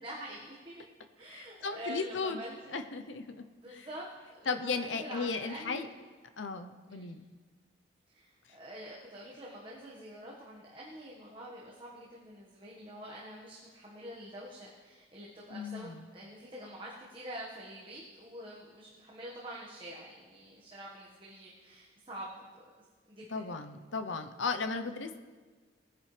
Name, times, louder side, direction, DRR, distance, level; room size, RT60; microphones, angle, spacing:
voice 1, 0.0-0.8 1.1-2.8 3.6-6.0 6.9-7.1 8.1-22.5 23.1-23.5, equal, 25° right, -5 dB, 1.6 m, -46 dB
voice 2, 1.3-2.4 2.7-3.4 3.7-3.9 4.5-5.9 6.4-7.3 15.5-16.0 23.3-25.2, left 4 dB, 85° left, 7 dB, 0.8 m, -36 dB
19.5 x 10.0 x 3.4 m, 1.4 s
head